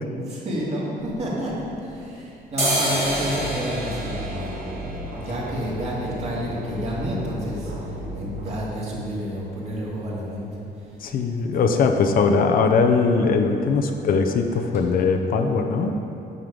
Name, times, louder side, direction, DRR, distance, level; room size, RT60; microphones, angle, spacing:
voice 1, 0.1-4.6 5.1-10.5, equal, 40° right, -5 dB, 2.2 m, -30 dB
sound 1, 1.0-2.0 2.4-10.1 10.4-10.5 10.8-11.3 11.6-11.9 12.1-12.4 12.6-13.4 13.7-13.9 14.4-14.5 14.7-14.8, right 1 dB, 15° right, 2.2 m, -31 dB
sound 2, 2.9-8.6, equal, 80° right, 1.6 m, -35 dB
voice 2, 11.0-16.0, left 4 dB, 55° left, 4 dB, 0.6 m, -20 dB
9.5 x 6.4 x 5.1 m, 2.8 s
cardioid pair, 160°, 17 cm